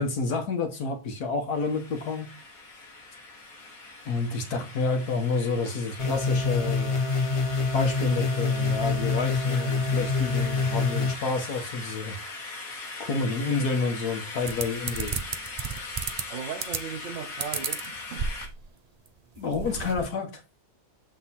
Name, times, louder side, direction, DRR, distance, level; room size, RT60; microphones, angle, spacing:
voice 1, 0.0-2.3 4.0-7.0 7.7-12.1 13.0-15.2 19.4-20.4, left 4 dB, 85° left, 1.7 m, -29 dB
sound 1, 1.5-18.5, left 3 dB, 65° left, 1.8 m, -40 dB
sound 2, 6.0-11.1, left 4 dB, 30° left, 0.6 m, -26 dB
sound 3, 14.5-16.2 16.6-17.0 17.4-18.7 19.1-19.2 19.4-20.0, right 6 dB, 85° right, 0.3 m, -32 dB
voice 2, 16.3-18.3, right 7 dB, 60° right, 1.1 m, -37 dB
7.8 x 3.7 x 4.1 m
omnidirectional pair, 1.6 m